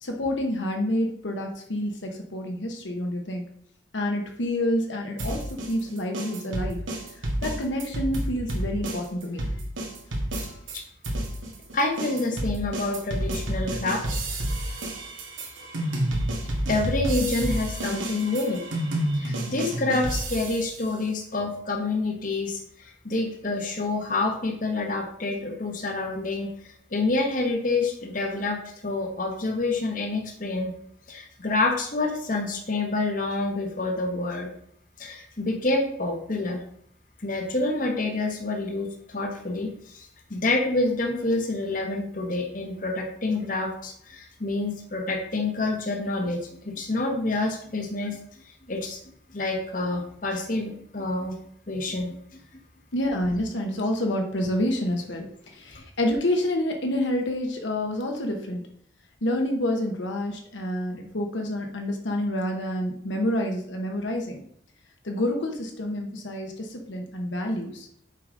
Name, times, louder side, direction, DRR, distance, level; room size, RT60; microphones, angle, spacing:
voice 1, 0.0-3.5 3.9-6.8 7.4-9.4 52.9-55.3 55.5-58.6 59.2-64.4 65.0-67.9, left 1 dB, 70° left, 2 dB, 0.9 m, -28 dB
sound 1, 5.2-10.8 11.0-20.8, right 1 dB, 90° right, 1.7 m, -30 dB
voice 2, 11.7-14.2 16.7-18.6 19.1-30.7 31.1-34.5 35.0-36.6 37.2-48.2 48.7-49.0 49.3-51.4 51.7-52.1, left 2 dB, 45° left, 2 dB, 1.0 m, -28 dB
6.8 x 4.9 x 3.8 m, 0.67 s
head